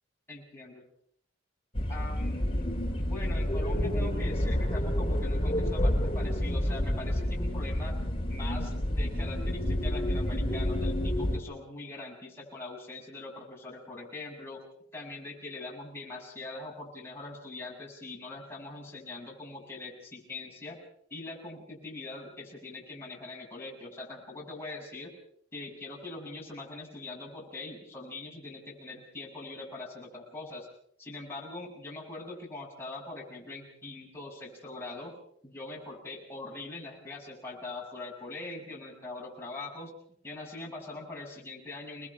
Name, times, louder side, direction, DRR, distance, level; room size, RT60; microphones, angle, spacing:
voice 1, 0.3-0.8 1.9-2.6 3.0-8.0 8.3-14.6 14.9-20.8 21.1-25.1 25.5-30.7 31.0-35.2 35.4-39.9 40.2-42.1, left 2 dB, 15° left, -3 dB, 7.3 m, -42 dB
sound 1, 1.7-11.4, left 1 dB, 30° left, 3.0 m, -29 dB
29.5 x 21.0 x 4.9 m, 0.63 s
head